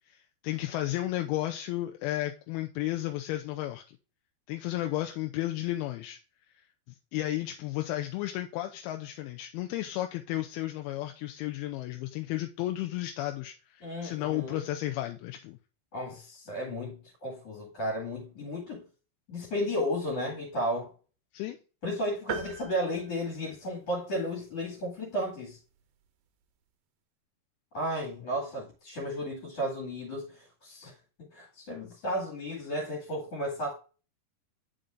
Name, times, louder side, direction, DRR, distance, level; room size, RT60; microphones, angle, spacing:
voice 1, 0.1-3.8 4.5-6.2 7.1-15.6 21.3-21.6, left 15 dB, 80° left, 2.4 m, -33 dB
voice 2, 13.8-14.6 15.9-18.8 19.3-20.9 21.8-25.6 27.7-30.9 31.3-33.7, equal, 45° left, 2.9 m, -33 dB
sound 1, 22.3-24.1, right 9 dB, 80° right, 2.4 m, -40 dB
8.8 x 5.6 x 2.5 m
omnidirectional pair, 4.6 m